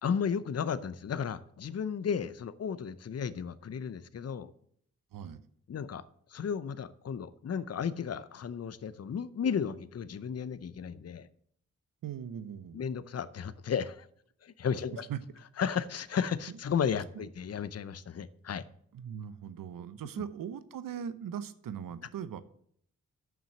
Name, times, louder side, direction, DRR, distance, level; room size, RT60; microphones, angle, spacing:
voice 1, 0.0-4.5 5.7-11.3 12.7-14.1 14.4-15.1 15.6-18.6, left 7 dB, 45° left, 15 dB, 0.7 m, -34 dB
voice 2, 5.1-5.4 12.0-12.9 14.9-15.2 17.1-17.3 18.9-22.4, right 8 dB, 75° right, 13 dB, 0.8 m, -40 dB
7.3 x 6.0 x 7.4 m, 0.64 s
supercardioid pair, 40°, 34 cm